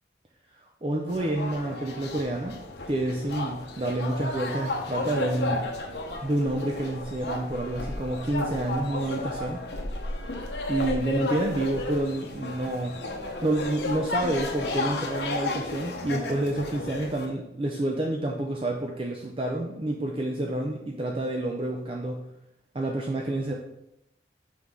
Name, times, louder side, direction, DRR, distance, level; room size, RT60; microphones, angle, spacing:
voice 1, 0.8-2.6 2.9-5.7 6.2-9.6 10.7-13.0 13.4-22.2 22.7-23.5, right 1 dB, 30° right, 0 dB, 0.5 m, -29 dB
sound 1, 1.1-17.3, left 2 dB, 70° left, 0.8 m, -33 dB
5.6 x 4.6 x 3.6 m, 0.84 s
head